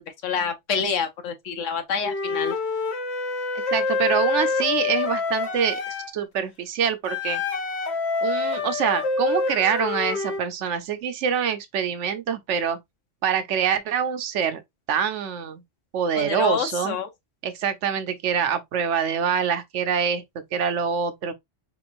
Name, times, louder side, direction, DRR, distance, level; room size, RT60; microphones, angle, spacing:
voice 1, 0.0-2.6 16.2-17.1, left 5 dB, 85° left, 1.2 m, -27 dB
Wind instrument woodwind instrument, 2.0-6.1 7.1-10.4, left 4 dB, 60° left, 1.0 m, -26 dB
voice 2, 3.7-5.8 6.1-7.4 8.2-12.8 13.2-14.6 14.9-15.6 15.9-17.0 17.4-21.3, right 7 dB, 75° right, 1.0 m, -25 dB
4.2 x 3.0 x 2.5 m
omnidirectional pair, 1.3 m